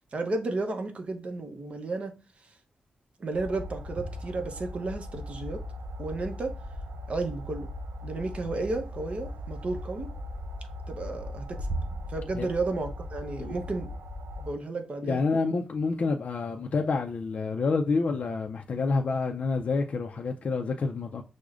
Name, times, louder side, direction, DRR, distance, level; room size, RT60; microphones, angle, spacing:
voice 1, 0.1-2.1 3.2-5.6 6.0-6.5 7.1-7.7 8.0-10.1 10.9-11.7 12.1-13.9 14.4-15.4, right 3 dB, 50° right, 0.7 m, -33 dB
sound 1, 3.3-14.5, equal, 85° right, 0.5 m, -38 dB
voice 2, 15.0-21.2, left 4 dB, 55° left, 0.4 m, -28 dB
6.0 x 2.1 x 2.4 m
cardioid pair, 85°, 3 cm